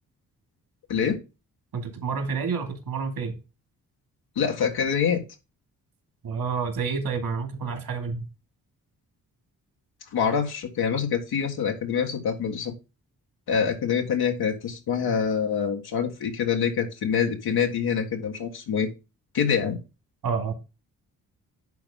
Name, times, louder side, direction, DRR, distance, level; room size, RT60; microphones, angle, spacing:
voice 1, 1.7-3.3 6.2-8.2 20.2-20.5, right 5 dB, 65° right, 2.5 m, -29 dB
voice 2, 4.3-5.2 10.1-12.7 13.5-18.9 19.3-19.8, left 7 dB, 80° left, 1.7 m, -25 dB
10.5 x 4.1 x 3.8 m
supercardioid pair, 55°, 37 cm